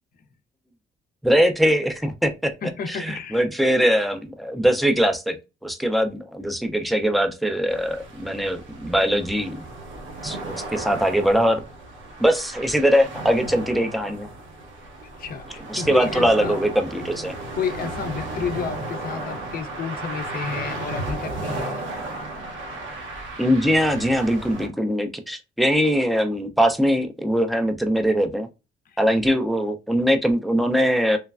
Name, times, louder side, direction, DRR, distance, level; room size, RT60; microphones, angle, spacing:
voice 1, 1.2-2.5 2.9-5.4 5.6-9.6 10.2-11.6 12.2-14.3 15.7-17.4 23.4-28.5 29.0-31.2, equal, ahead, 0.4 m, -21 dB
voice 2, 2.6-3.5 15.2-16.6 17.6-21.9 28.9-29.0, left 6 dB, 50° left, 0.5 m, -31 dB
sound 1, 7.7-24.7, right 2 dB, 75° right, 0.8 m, -34 dB
3.1 x 2.1 x 2.3 m
cardioid pair, 90°, 20 cm